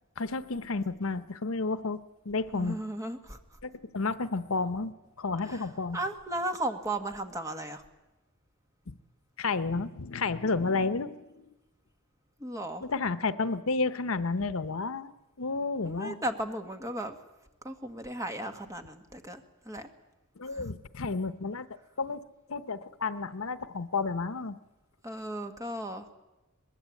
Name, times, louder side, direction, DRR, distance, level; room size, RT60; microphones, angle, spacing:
voice 1, 0.2-2.8 3.6-4.9 5.2-6.0 8.9-9.0 9.4-11.4 12.8-15.1 15.4-16.2 20.4-21.7 22.0-22.2 22.5-24.6, left 3 dB, 75° left, 13 dB, 0.9 m, -31 dB
voice 2, 2.5-3.4 5.4-5.6 5.9-7.8 12.4-12.8 15.8-17.2 17.6-19.9 20.5-20.7 25.0-26.1, right 1 dB, 15° right, 6 dB, 1.7 m, -35 dB
23.5 x 20.5 x 8.6 m, 1.0 s
head